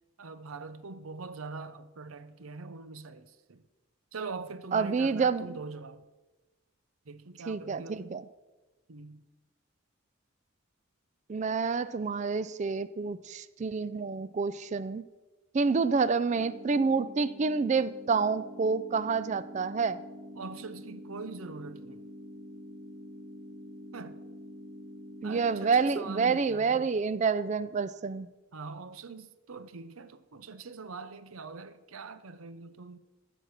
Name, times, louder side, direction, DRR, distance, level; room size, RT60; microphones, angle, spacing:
voice 1, 0.2-3.6 4.1-6.0 7.1-8.3 8.9-9.2 20.4-22.1 23.9-24.2 25.2-26.9 28.5-33.0, right 4 dB, 90° right, 0.7 m, -43 dB
voice 2, 4.7-5.5 7.5-8.2 11.3-15.0 15.5-20.0 25.2-28.3, right 5 dB, 35° right, 0.3 m, -28 dB
sound 1, 16.3-26.3, equal, 55° right, 1.2 m, -46 dB
14.5 x 6.1 x 6.5 m
head